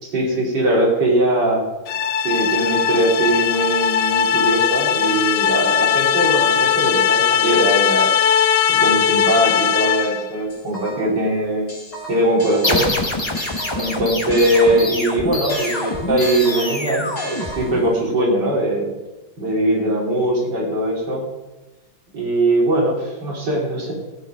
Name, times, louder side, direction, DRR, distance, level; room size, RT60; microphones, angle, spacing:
voice 1, 0.0-1.6 2.2-8.1 8.8-11.7 12.1-12.9 13.8-18.9 19.4-21.3 22.1-23.9, right 1 dB, 65° right, -2 dB, 3.6 m, -20 dB
sound 1, 1.9-10.3, left 8 dB, 80° left, 0.7 m, -19 dB
sound 2, 10.5-11.2 11.7-15.0 15.5-18.0, right 1 dB, 60° left, 5.3 m, -34 dB
sound 3, 12.6-18.1, left 2 dB, 15° left, 1.1 m, -25 dB
14.5 x 8.0 x 5.7 m, 1.1 s
omnidirectional pair, 2.0 m